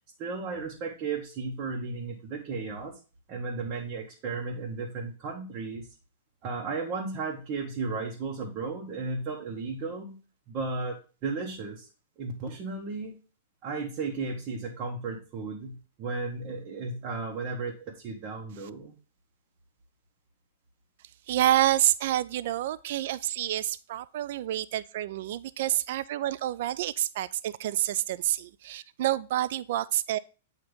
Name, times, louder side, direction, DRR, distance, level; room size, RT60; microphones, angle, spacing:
voice 1, 0.2-2.9 3.3-5.9 6.4-10.2 10.5-11.9 12.2-13.2 13.6-18.9, right 4 dB, 35° right, 1.3 m, -34 dB
voice 2, 21.3-30.2, right 13 dB, 60° right, 0.3 m, -28 dB
7.9 x 2.9 x 5.1 m
hypercardioid pair, 135°, 0 cm